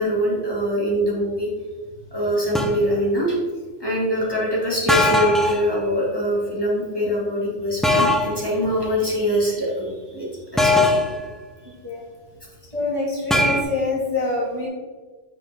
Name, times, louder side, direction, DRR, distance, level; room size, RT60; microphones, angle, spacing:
voice 1, 0.0-1.5 2.1-3.4 3.8-10.8, equal, 20° left, -6 dB, 2.2 m, -23 dB
sound 1, 2.5-2.8 4.9-5.6 7.8-8.4 10.6-11.2 13.3-13.6, left 1 dB, ahead, 0.3 m, -19 dB
voice 2, 12.7-14.7, left 3 dB, 25° right, -6 dB, 1.6 m, -25 dB
7.8 x 5.9 x 3.5 m, 1.4 s
omnidirectional pair, 1.3 m